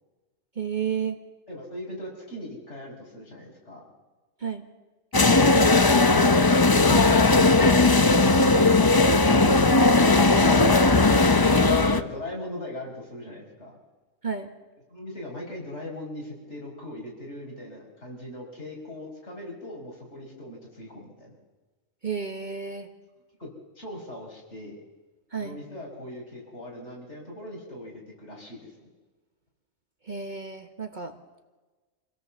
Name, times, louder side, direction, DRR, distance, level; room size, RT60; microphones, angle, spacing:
voice 1, 0.5-1.2 4.4-4.6 14.2-14.5 22.0-22.9 25.3-25.6 30.0-31.1, right 6 dB, 40° right, 6 dB, 1.3 m, -31 dB
voice 2, 1.5-3.8 11.7-13.8 14.9-21.4 23.4-24.8 25.4-28.9, left 1 dB, 60° left, -1 dB, 5.3 m, -40 dB
sound 1, 5.1-12.0, left 3 dB, 25° left, 0.6 m, -18 dB
26.0 x 17.0 x 7.2 m, 1.3 s
omnidirectional pair, 1.3 m